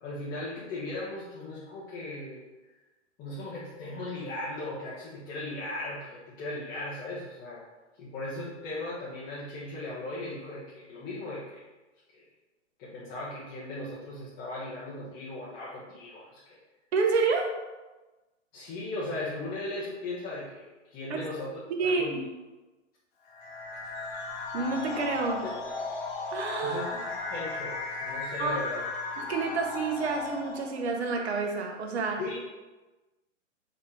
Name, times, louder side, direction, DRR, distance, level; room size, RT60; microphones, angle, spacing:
voice 1, 0.0-2.4 3.2-7.6 8.0-11.6 12.1-12.2 12.8-16.6 18.5-22.2 25.4-25.5 26.6-28.8 32.2-32.6, left 2 dB, 25° left, -9 dB, 1.3 m, -37 dB
voice 2, 16.9-17.5 21.7-22.2 24.5-25.4 26.3-26.8 28.4-28.6 29.2-32.2, right 4 dB, 55° right, 2 dB, 1.3 m, -28 dB
sound 1, 23.3-30.9, left 3 dB, 40° left, 1.2 m, -36 dB
5.6 x 3.5 x 4.9 m, 1.1 s
hypercardioid pair, 145°, 38 cm